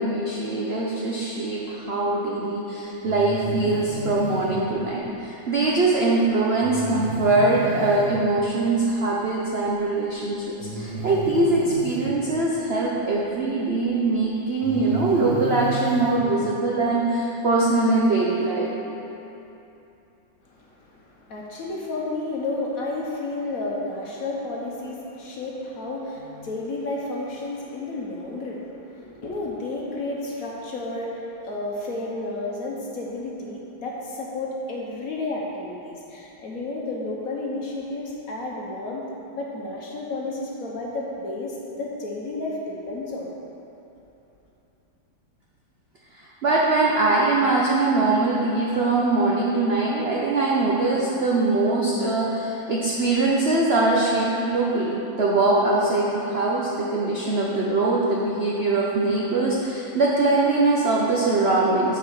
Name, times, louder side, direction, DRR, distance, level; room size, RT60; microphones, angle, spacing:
voice 1, 0.0-18.7 46.1-62.0, right 2 dB, 85° right, -4 dB, 0.5 m, -22 dB
Breathing, 3.0-4.6 6.6-8.2 9.6-9.7 10.6-12.1 13.7-13.8 14.5-16.2, right 1 dB, 45° right, 1.5 m, -32 dB
voice 2, 20.4-43.3, left 2 dB, 50° left, -3 dB, 1.2 m, -32 dB
7.9 x 4.7 x 6.4 m, 2.9 s
omnidirectional pair, 2.2 m